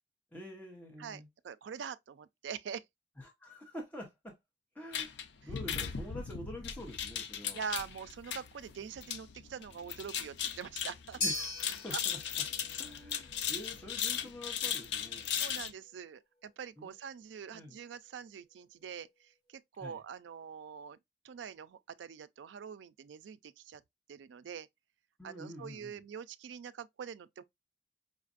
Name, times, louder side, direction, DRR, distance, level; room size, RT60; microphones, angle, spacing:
voice 1, 0.3-1.3 3.2-4.4 4.7-7.7 11.2-12.2 12.8-15.3 16.8-16.9 17.5-17.8 19.8-20.0 25.2-26.0, left 1 dB, 10° left, 0.9 m, -47 dB
voice 2, 1.0-2.8 5.4-5.5 7.5-11.2 11.9-12.0 15.4-21.0 21.2-23.8 24.1-24.7 25.2-27.4, right 7 dB, 80° right, 0.3 m, -44 dB
sound 1, 4.9-15.7, left 8 dB, 75° left, 0.5 m, -38 dB
sound 2, 11.2-19.6, left 2 dB, 60° left, 0.9 m, -44 dB
5.0 x 2.5 x 2.4 m
head